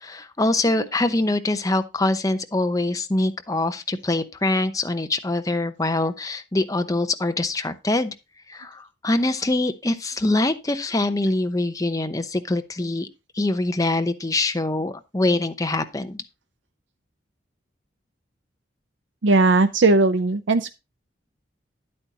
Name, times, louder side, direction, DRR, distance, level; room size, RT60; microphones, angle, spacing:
voice 1, 0.0-8.1 8.5-13.1 13.3-16.2, left 2 dB, 20° left, 0.8 m, -24 dB
voice 2, 19.2-20.7, right 3 dB, 90° right, 0.6 m, -19 dB
10.5 x 8.7 x 2.9 m
head